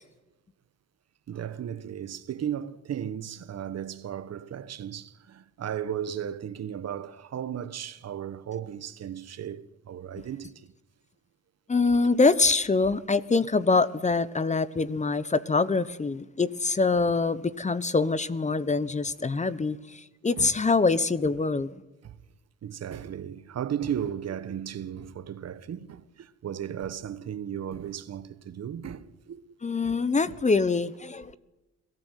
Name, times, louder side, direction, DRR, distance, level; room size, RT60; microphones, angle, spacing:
voice 1, 1.3-10.7 20.4-20.5 22.0-22.2 22.6-29.4 29.8-29.9, right 9 dB, 55° right, 1.3 m, -35 dB
voice 2, 11.7-21.7 29.6-31.4, left 3 dB, 25° left, 1.0 m, -24 dB
22.0 x 14.0 x 9.2 m
cardioid pair, 90°, 30 cm